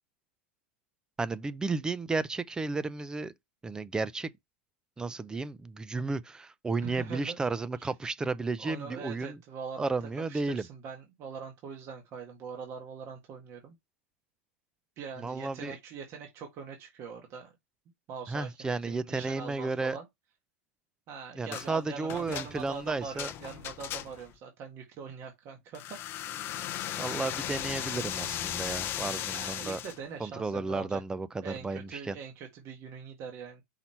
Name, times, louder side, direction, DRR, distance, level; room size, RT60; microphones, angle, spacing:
voice 1, 1.2-3.3 3.6-4.3 5.0-9.4 9.8-10.7 15.2-15.7 18.3-20.0 21.3-23.3 27.0-29.8 30.2-32.2, right 3 dB, 10° right, 0.4 m, -33 dB
voice 2, 6.8-7.4 7.8-7.9 8.6-9.9 10.3-13.8 15.0-17.5 18.1-20.1 21.1-25.8 29.3-31.0 31.4-33.6, right 6 dB, 40° right, 1.6 m, -42 dB
sound 1, 21.5-21.7 22.1-24.4 25.7-30.0, left 12 dB, 35° left, 0.7 m, -36 dB
5.7 x 4.4 x 4.4 m
hypercardioid pair, 130°, 7 cm